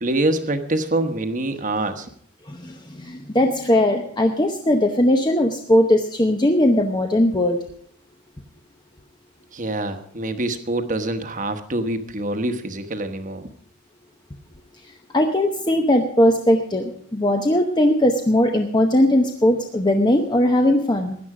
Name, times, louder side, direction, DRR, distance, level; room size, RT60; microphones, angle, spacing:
voice 1, 0.0-2.1 9.5-13.5, right 2 dB, 35° right, 8 dB, 1.2 m, -25 dB
voice 2, 2.5-7.6 14.8-21.2, left 1 dB, 20° left, 4 dB, 0.8 m, -19 dB
16.5 x 11.0 x 4.9 m, 0.64 s
head